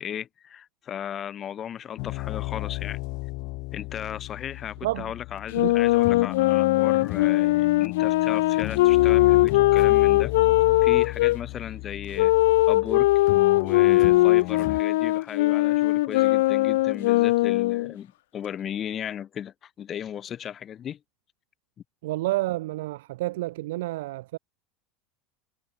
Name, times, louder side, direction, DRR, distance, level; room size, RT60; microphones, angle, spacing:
voice 1, 0.0-3.0 3.7-10.3 10.8-12.3 12.7-13.1 13.5-21.0, left 9 dB, 20° left, 0.8 m, -36 dB
sound 1, 2.0-14.8, left 26 dB, 45° left, 1.9 m, -34 dB
Wind instrument woodwind instrument, 5.5-11.4 12.2-17.9, left 18 dB, 80° left, 0.9 m, -20 dB
voice 2, 22.0-24.4, right 18 dB, 85° right, 0.7 m, -29 dB
supercardioid pair, 180°, 0 cm